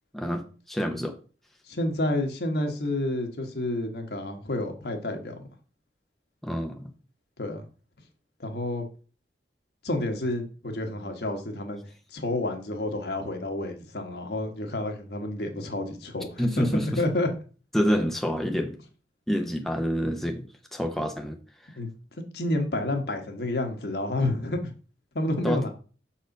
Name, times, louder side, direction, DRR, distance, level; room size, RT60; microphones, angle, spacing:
voice 1, 0.1-1.1 6.4-6.9 16.4-17.0 17.7-18.8 19.3-20.4 20.7-21.4 25.4-25.6, equal, ahead, 3 dB, 0.7 m, -27 dB
voice 2, 1.7-5.5 7.4-7.6 8.4-8.9 9.8-11.8 12.1-17.3 21.8-21.9 22.3-24.7 25.1-25.7, left 1 dB, 65° left, 4 dB, 1.3 m, -29 dB
6.4 x 4.3 x 5.2 m, 0.38 s
head